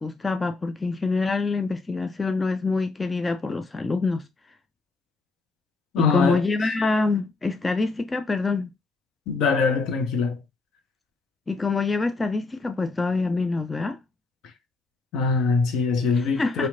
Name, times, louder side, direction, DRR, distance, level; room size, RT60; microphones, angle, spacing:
voice 1, 0.0-4.2 6.0-8.7 11.5-14.0 16.1-16.7, left 3 dB, 25° left, 0.3 m, -25 dB
voice 2, 5.9-6.4 9.3-10.4 15.1-16.7, left 5 dB, 65° left, 0.6 m, -22 dB
2.8 x 2.1 x 2.5 m
hypercardioid pair, 60°, 0 cm